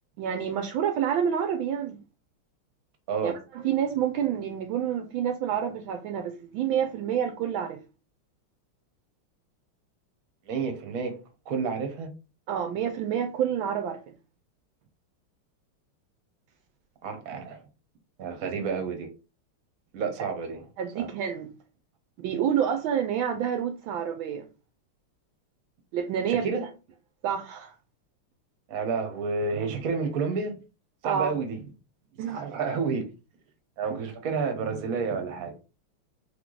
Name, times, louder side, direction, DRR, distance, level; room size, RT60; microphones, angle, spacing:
voice 1, 0.2-2.0 3.2-7.8 12.5-14.1 20.8-21.5 22.2-24.5 25.9-26.5 27.2-27.7 31.0-31.3 32.2-32.4, right 8 dB, 75° right, 1.3 m, -28 dB
voice 2, 10.5-11.2 11.5-12.1 17.0-17.6 18.2-19.1 19.9-20.6 20.9-21.1 26.3-26.7 28.7-30.6 31.0-31.6 32.3-33.1 33.8-35.5, right 5 dB, 50° right, 1.1 m, -30 dB
3.6 x 3.0 x 3.8 m
omnidirectional pair, 2.4 m